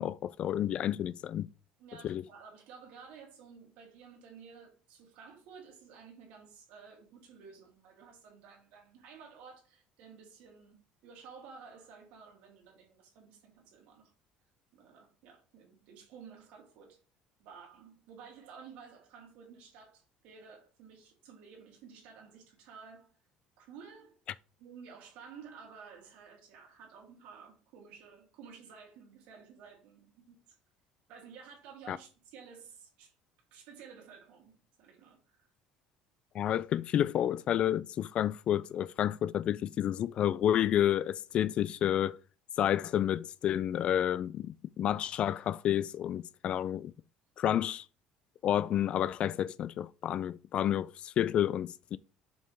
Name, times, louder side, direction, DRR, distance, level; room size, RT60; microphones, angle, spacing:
voice 1, 0.0-1.5 2.0-2.2 31.9-32.0 36.3-42.2 42.6-46.9 47.4-47.8 48.4-52.0, left 11 dB, 45° left, 0.3 m, -30 dB
voice 2, 1.8-14.1 14.7-17.0 17.4-23.2 23.6-24.2 24.6-30.4 31.1-33.1 33.5-35.5, right 6 dB, 75° right, 3.3 m, -53 dB
7.1 x 5.4 x 3.5 m
cardioid pair, 130°, 3 cm